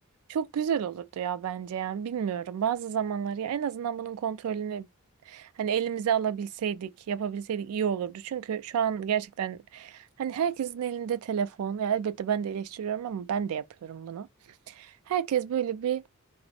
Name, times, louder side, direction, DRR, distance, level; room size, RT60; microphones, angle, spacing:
voice 1, 0.3-4.9 5.3-14.3 14.7-16.0, right 8 dB, 75° right, 0.3 m, -30 dB
2.4 x 2.0 x 2.6 m
head